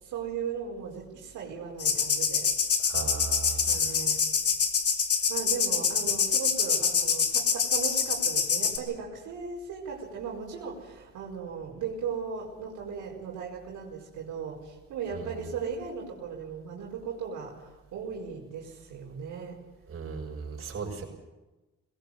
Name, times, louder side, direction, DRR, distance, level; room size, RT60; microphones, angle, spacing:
voice 1, 0.0-2.5 3.5-4.2 5.3-19.6, right 6 dB, 90° right, -3 dB, 4.9 m, -37 dB
sound 1, 1.8-8.8, left 6 dB, 50° left, 2.6 m, -26 dB
voice 2, 2.8-3.8 15.1-15.3 19.9-21.0, right 5 dB, 50° right, 0 dB, 6.8 m, -37 dB
20.0 x 17.5 x 8.2 m, 1.1 s
cardioid pair, 90°, 30 cm